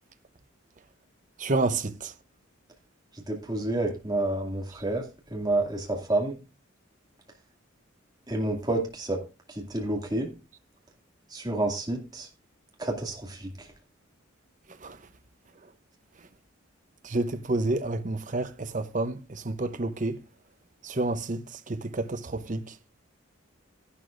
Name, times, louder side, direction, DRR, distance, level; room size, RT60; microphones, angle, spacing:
voice 1, 1.4-1.9 17.1-18.5 18.7-19.1 19.5-20.2 21.0-21.4 21.9-22.2 22.5-22.6, right 2 dB, 40° right, 0.7 m, -28 dB
voice 2, 3.3-5.0 5.3-6.4 8.3-9.2 9.6-10.3 11.3-12.3 12.8-13.4, right 2 dB, 20° right, 2.3 m, -29 dB
12.5 x 11.0 x 2.5 m
head